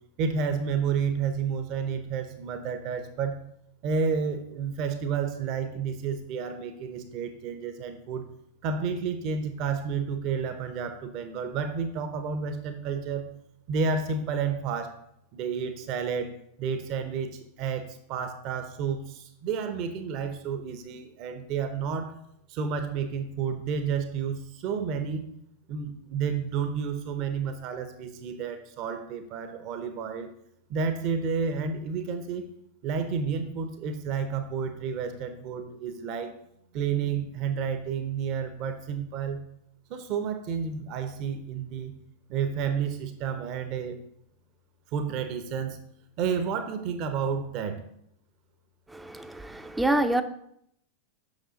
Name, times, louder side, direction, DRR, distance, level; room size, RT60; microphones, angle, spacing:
voice 1, 0.2-3.4 3.8-8.3 8.6-13.3 13.7-15.0 15.3-16.3 16.6-22.2 22.5-25.3 25.7-30.3 30.7-32.4 32.8-36.3 36.7-39.4 39.9-42.0 42.3-44.0 44.9-45.8 46.2-47.8, right 6 dB, 40° right, 9 dB, 0.8 m, -30 dB
voice 2, 48.9-50.2, right 1 dB, 5° right, 10 dB, 0.6 m, -27 dB
8.1 x 6.1 x 4.1 m, 0.74 s
figure-of-eight pair, 90°, 0 cm